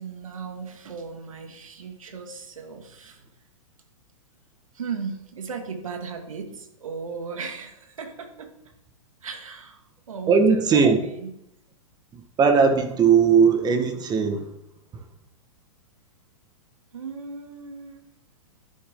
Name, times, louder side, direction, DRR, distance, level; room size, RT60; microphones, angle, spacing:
voice 1, 0.0-3.3 4.7-8.7 9.2-11.3 16.9-18.1, right 5 dB, 75° right, 4 dB, 2.4 m, -36 dB
voice 2, 10.3-11.0 12.1-14.5 14.9-15.0, right 6 dB, 25° right, 6 dB, 1.6 m, -19 dB
11.0 x 10.0 x 3.8 m, 0.78 s
hypercardioid pair, 110°, 17 cm